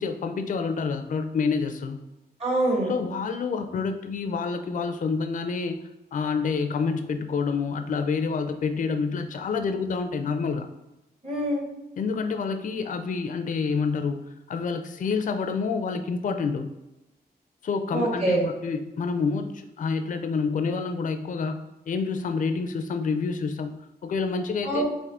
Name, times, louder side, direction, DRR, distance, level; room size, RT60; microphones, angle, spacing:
voice 1, 0.0-2.0 2.9-5.8 6.1-10.7 12.0-16.7 17.6-21.6 21.9-24.8, left 5 dB, 55° left, 7 dB, 0.4 m, -28 dB
voice 2, 2.4-2.9 11.2-11.7 17.9-18.4 24.6-24.8, right 1 dB, 40° right, -2 dB, 1.4 m, -25 dB
3.6 x 2.5 x 3.4 m, 0.96 s
cardioid pair, 75°, 17 cm